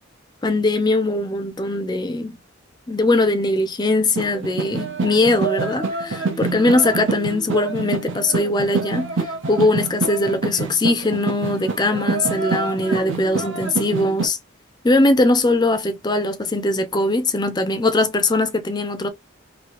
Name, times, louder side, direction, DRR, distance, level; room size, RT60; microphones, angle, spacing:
voice 1, 0.4-2.3 2.9-9.1 9.5-14.4 14.8-19.1, left 2 dB, 20° left, 0.5 m, -20 dB
sound 1, 4.2-14.3, right 4 dB, 75° right, 0.8 m, -26 dB
2.9 x 2.7 x 3.0 m
head